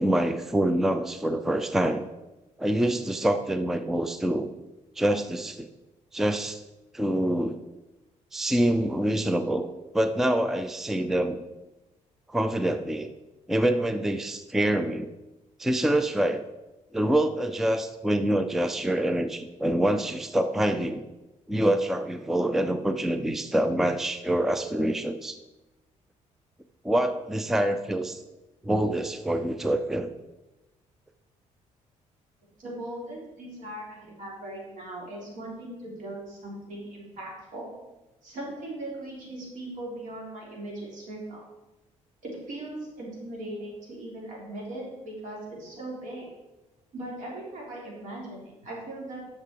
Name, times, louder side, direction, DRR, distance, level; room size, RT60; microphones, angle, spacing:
voice 1, 0.0-2.0 2.6-4.5 5.0-5.7 6.1-6.6 6.9-7.6 8.3-9.7 9.9-11.4 12.3-13.1 13.5-15.1 15.6-16.4 16.9-21.0 21.5-25.4 26.8-28.2 28.6-30.1, right 1 dB, 5° right, 9 dB, 0.4 m, -26 dB
voice 2, 32.6-37.7 38.2-41.4 42.2-46.3 46.9-49.2, right 1 dB, 80° right, -3 dB, 3.9 m, -39 dB
10.5 x 6.6 x 4.7 m, 1.0 s
cardioid pair, 155°, 13 cm